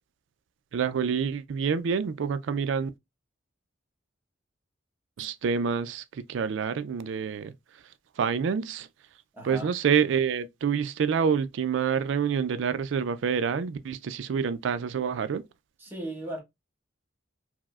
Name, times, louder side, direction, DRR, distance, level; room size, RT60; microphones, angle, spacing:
voice 1, 0.7-2.9 5.2-7.5 8.2-8.9 9.4-15.4, right 6 dB, 65° right, 0.3 m, -27 dB
voice 2, 9.3-9.7 15.8-16.4, right 1 dB, 10° right, 0.9 m, -36 dB
4.6 x 2.0 x 2.3 m
head